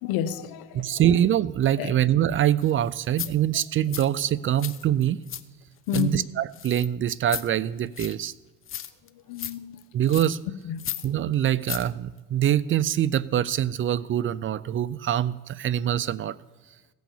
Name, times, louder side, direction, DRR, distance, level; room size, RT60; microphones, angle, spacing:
voice 1, 0.0-1.0 1.8-1.9 5.9-6.2 9.3-9.8 10.7-10.9, left 10 dB, 75° left, 1.0 m, -30 dB
voice 2, 0.7-5.2 5.9-8.3 9.9-10.4 11.0-16.4, right 11 dB, 35° right, 0.4 m, -24 dB
sound 1, 2.6-2.7 3.1-3.3 3.9-4.1 4.5-5.4 5.7-6.1 6.5-6.9 7.3-7.5 7.9-8.2 8.7-9.1 9.4-9.5 10.0-10.4 10.8-11.1 11.4-11.9 12.2-12.3, left 10 dB, 35° left, 0.7 m, -35 dB
16.5 x 6.2 x 7.2 m
supercardioid pair, 95°, 36 cm